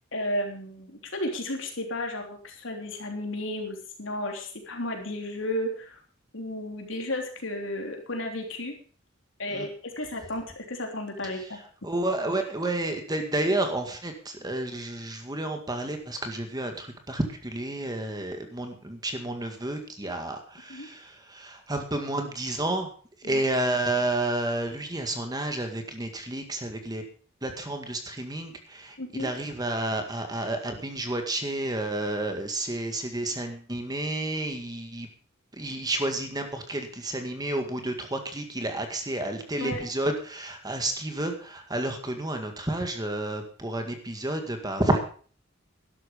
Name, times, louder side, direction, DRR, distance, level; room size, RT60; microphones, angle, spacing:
voice 1, 0.1-6.0 6.3-8.7 9.4-11.6 20.7-20.9 23.2-23.4 29.0-29.3 39.6-39.8, left 1 dB, 75° left, 3 dB, 3.4 m, -33 dB
voice 2, 11.8-22.9 23.2-27.0 27.4-35.1 35.5-45.0, right 1 dB, 20° right, 5 dB, 2.0 m, -30 dB
12.5 x 11.5 x 5.3 m, 0.42 s
head